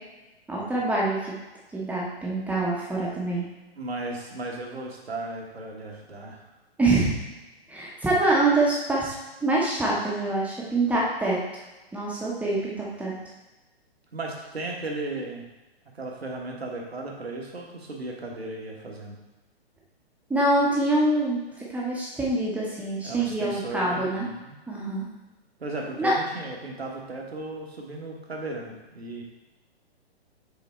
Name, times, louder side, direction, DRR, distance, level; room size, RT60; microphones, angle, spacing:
voice 1, 0.5-1.2 1.7-3.4 6.8-7.2 7.7-9.1 9.4-11.4 11.9-13.1 20.3-24.3 24.7-25.1 26.0-26.1, right 2 dB, 5° right, -5 dB, 0.9 m, -25 dB
voice 2, 3.7-6.4 14.1-15.5 15.9-19.2 23.0-24.6 25.6-29.2, right 2 dB, 75° right, 0 dB, 1.4 m, -35 dB
6.3 x 4.0 x 4.3 m, 1.1 s
figure-of-eight pair, 120°, 32 cm